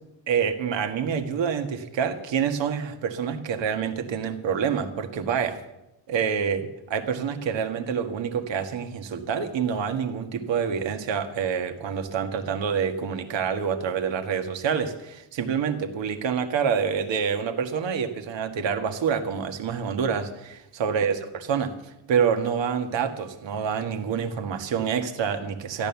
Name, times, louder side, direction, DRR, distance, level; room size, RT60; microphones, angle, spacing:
voice 1, 0.3-5.6 6.1-21.7 22.1-25.9, right 7 dB, 65° right, 7 dB, 1.7 m, -27 dB
13.5 x 11.0 x 7.1 m, 0.90 s
cardioid pair, 125°, 48 cm